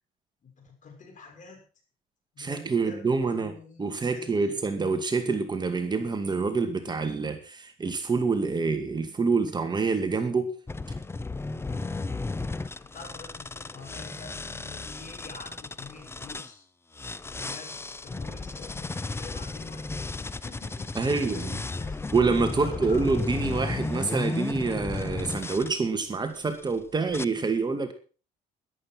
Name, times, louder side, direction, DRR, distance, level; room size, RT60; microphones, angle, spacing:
voice 1, 0.4-1.6 2.3-4.6 11.6-16.7 17.4-17.8 18.0-22.0 22.5-23.2, left 4 dB, 50° left, 4 dB, 6.4 m, -47 dB
voice 2, 2.4-3.5 3.8-10.5 10.9-11.0 21.0-21.6 22.1-27.9, right 4 dB, 25° right, 7 dB, 2.2 m, -27 dB
sound 1, 10.7-16.5 17.0-25.7 26.4-26.7 27.1-27.3, left 3 dB, 15° left, 0.7 m, -34 dB
13.5 x 11.5 x 6.1 m, 0.37 s
cardioid pair, 110°, 17 cm